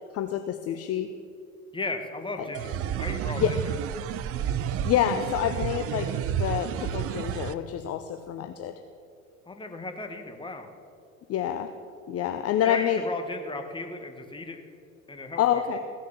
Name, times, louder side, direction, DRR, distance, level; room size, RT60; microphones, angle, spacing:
voice 1, 0.1-1.1 3.4-3.5 4.8-8.7 11.3-11.7 12.1-13.0 15.4-15.8, left 10 dB, 35° left, 7 dB, 0.7 m, -27 dB
voice 2, 1.7-3.6 9.5-10.7 12.6-14.6 15.1-15.4, left 2 dB, 10° left, 6 dB, 1.4 m, -35 dB
sound 1, 2.5-7.5, right 10 dB, 35° right, 0.5 m, -30 dB
16.0 x 6.4 x 7.1 m, 2.4 s
figure-of-eight pair, 65°, 42 cm